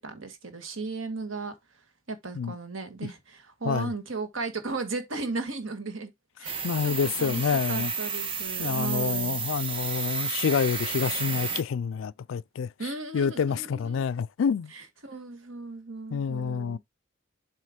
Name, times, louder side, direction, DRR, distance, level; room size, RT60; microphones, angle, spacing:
voice 1, 0.0-6.1 6.4-9.4 12.8-14.0 14.7-16.8, right 3 dB, 85° right, 1.6 m, -36 dB
sound 1, 6.4-11.6, right 5 dB, 25° right, 1.2 m, -31 dB
voice 2, 6.6-7.9 8.6-12.7 13.1-14.7 16.1-16.8, left 6 dB, 75° left, 0.4 m, -28 dB
7.5 x 3.0 x 4.9 m
head